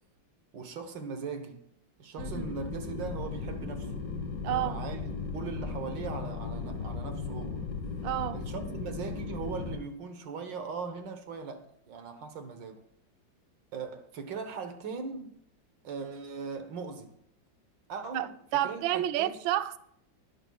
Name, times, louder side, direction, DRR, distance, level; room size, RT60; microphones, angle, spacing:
voice 1, 0.5-1.6 2.0-3.9 4.5-7.7 8.3-12.8 13.7-15.4 15.8-17.1 17.9-19.4, right 5 dB, 70° right, 1.8 m, -39 dB
sound 1, 2.2-9.8, left 4 dB, 65° left, 1.9 m, -36 dB
voice 2, 2.2-2.5 4.4-4.8 8.0-8.4 18.1-19.8, right 13 dB, 85° right, 1.4 m, -30 dB
20.0 x 11.0 x 2.3 m
omnidirectional pair, 2.1 m